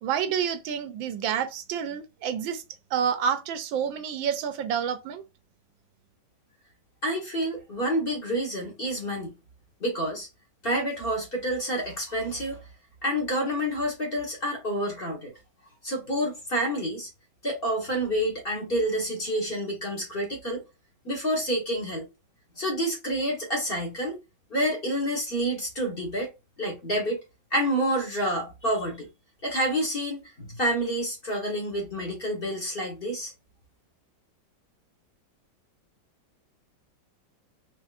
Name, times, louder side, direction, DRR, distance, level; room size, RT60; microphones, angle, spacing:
voice 1, 0.0-2.6 2.9-5.2, right 8 dB, 85° right, 1.4 m, -28 dB
voice 2, 7.0-9.3 9.8-10.3 10.6-12.6 13.0-15.3 15.8-17.1 17.4-20.6 21.0-22.1 22.6-24.2 24.5-26.3 26.6-27.2 27.5-29.1 29.4-33.3, equal, 35° left, 1.3 m, -28 dB
4.4 x 3.2 x 2.4 m
omnidirectional pair, 2.1 m